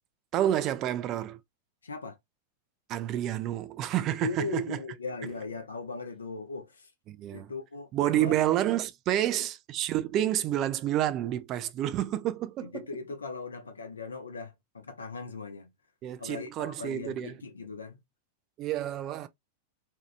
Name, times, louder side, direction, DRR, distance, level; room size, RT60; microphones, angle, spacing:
voice 1, 0.3-1.4 2.9-4.8 7.1-7.5 7.9-12.7 16.0-17.3 18.6-19.3, right 12 dB, 35° right, 0.4 m, -29 dB
voice 2, 1.8-2.2 4.2-6.9 7.3-8.3 12.6-15.7 16.2-18.0, left 4 dB, 75° left, 0.7 m, -38 dB
2.8 x 2.4 x 3.2 m
figure-of-eight pair, 90°, 0 cm